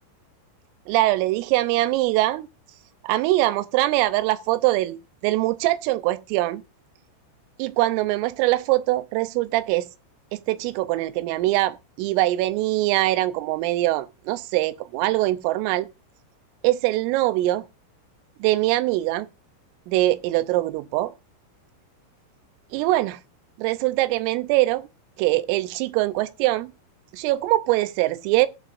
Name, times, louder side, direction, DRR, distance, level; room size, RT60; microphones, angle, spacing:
voice 1, 0.9-2.5 3.0-6.6 7.6-9.9 10.3-15.9 16.6-17.6 18.4-19.3 19.9-21.1 22.7-23.2 23.6-24.9 25.2-26.7 27.1-28.5, right 17 dB, 85° right, 3.4 m, -23 dB
19.5 x 8.9 x 2.5 m
omnidirectional pair, 5.8 m